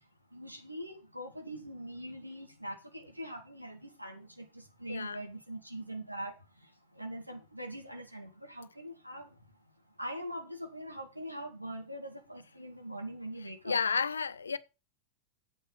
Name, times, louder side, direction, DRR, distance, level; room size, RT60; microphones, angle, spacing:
voice 1, 0.3-6.4 6.6-9.4 10.0-13.8, right 1 dB, 85° right, 2.2 m, -42 dB
voice 2, 4.9-5.2 13.6-14.6, left 5 dB, 75° left, 0.6 m, -31 dB
8.6 x 8.0 x 5.2 m
figure-of-eight pair, 90°, 0 cm